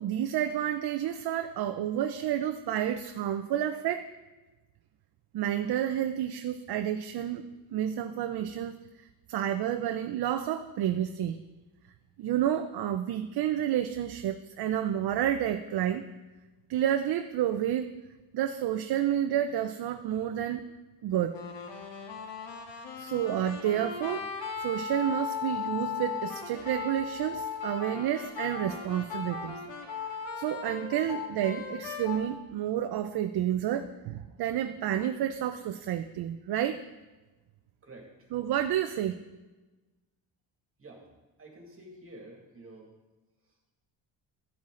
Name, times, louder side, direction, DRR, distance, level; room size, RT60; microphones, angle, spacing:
voice 1, 0.0-4.1 5.3-7.4 7.7-8.8 9.3-11.4 12.2-16.0 16.7-17.9 18.3-20.7 21.0-21.4 23.0-24.3 24.6-29.6 30.4-36.8 38.3-39.2, right 10 dB, 55° right, 7 dB, 0.6 m, -30 dB
sound 1, 21.3-32.3, left 6 dB, 70° left, 1.7 m, -37 dB
voice 2, 41.4-42.9, right 1 dB, 30° right, -1 dB, 2.4 m, -49 dB
14.0 x 7.3 x 3.8 m, 1.2 s
cardioid pair, 110°, 46 cm